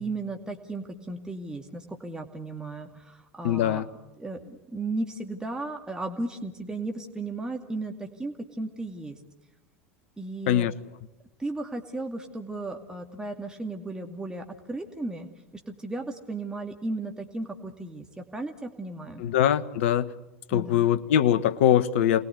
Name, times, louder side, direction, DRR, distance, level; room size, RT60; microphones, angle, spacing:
voice 1, 0.0-3.8 4.2-9.2 10.2-10.7 11.4-15.3 15.5-19.2 20.5-20.9, right 2 dB, 10° right, 3 dB, 2.4 m, -35 dB
voice 2, 3.4-3.9 10.5-10.7 19.2-20.1 20.5-22.2, left 10 dB, 65° left, 14 dB, 1.3 m, -22 dB
29.5 x 21.0 x 8.3 m, 1.0 s
figure-of-eight pair, 80°, 7 cm